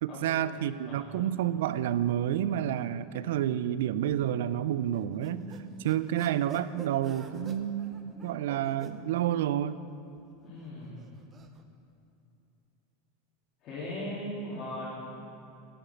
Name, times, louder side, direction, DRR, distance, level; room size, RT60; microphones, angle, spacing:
voice 1, 0.0-9.8, right 11 dB, 80° right, 15 dB, 0.3 m, -30 dB
sound 1, 4.6-6.3 6.9-7.3 8.1-9.9, right 1 dB, 5° left, 0.8 m, -50 dB
sound 2, 4.9-9.0 9.9-11.6, right 5 dB, 20° right, 0.5 m, -50 dB
voice 2, 10.4-11.0 13.6-14.9, left 1 dB, 35° left, -9 dB, 2.0 m, -38 dB
9.6 x 6.9 x 5.2 m, 2.7 s
supercardioid pair, 160°, 0 cm